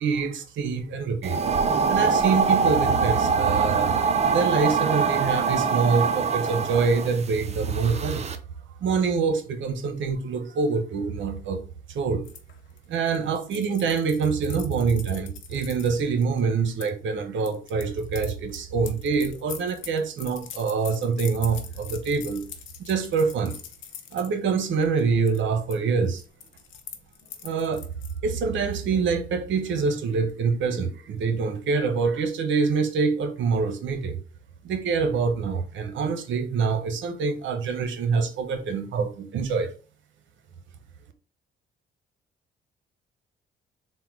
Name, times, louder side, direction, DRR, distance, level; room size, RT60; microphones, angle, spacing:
voice 1, 0.0-1.4 1.9-4.0 4.3-8.3 8.8-11.6 11.9-12.3 12.9-22.5 22.8-23.6 24.1-26.2 27.4-27.9 28.2-34.2 34.6-39.7, right 5 dB, 70° right, 0.8 m, -25 dB
sound 1, 1.2-8.4, right 5 dB, 35° right, 0.5 m, -24 dB
sound 2, 12.3-16.9 17.4-24.3 24.7-25.0 25.3-25.8 26.0-28.2, left 9 dB, 75° left, 0.7 m, -43 dB
3.7 x 2.2 x 4.4 m
cardioid pair, 90°, 20 cm